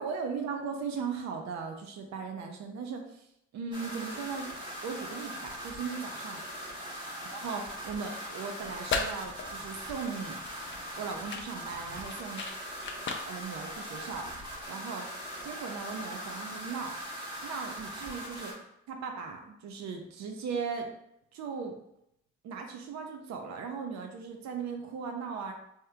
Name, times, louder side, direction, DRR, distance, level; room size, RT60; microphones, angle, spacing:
voice 1, 0.0-3.3 3.5-4.5 4.8-6.4 7.2-10.4 11.0-12.4 13.3-14.4 14.7-15.1 15.4-17.0 17.4-18.5 18.9-20.9 21.3-21.7 22.4-25.5, right 5 dB, 65° right, 4 dB, 0.6 m, -38 dB
sound 1, 3.7-18.5, equal, 15° right, 1.2 m, -41 dB
sound 2, 8.6-14.7, left 4 dB, 40° left, 0.5 m, -38 dB
3.5 x 2.7 x 2.3 m, 0.78 s
cardioid pair, 90°, 30 cm